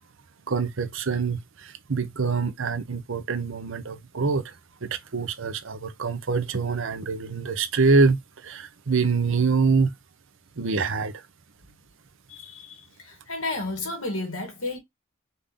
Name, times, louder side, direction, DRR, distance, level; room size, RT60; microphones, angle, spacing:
voice 1, 0.5-4.5 4.8-9.9 10.6-11.1, right 4 dB, 60° right, 0.7 m, -25 dB
voice 2, 12.3-14.8, left 2 dB, 80° left, 2.4 m, -32 dB
5.3 x 2.7 x 3.7 m
head